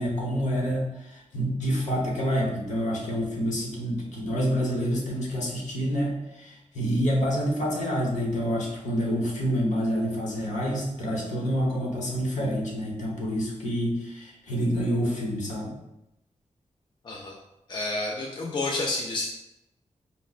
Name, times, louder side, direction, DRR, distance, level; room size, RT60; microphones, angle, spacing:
voice 1, 0.0-15.7, equal, 70° left, -3 dB, 1.0 m, -27 dB
voice 2, 17.0-17.4 17.7-19.2, left 2 dB, 35° left, -1 dB, 0.4 m, -29 dB
5.2 x 2.1 x 2.4 m, 0.89 s
wide cardioid pair, 135°, 13 cm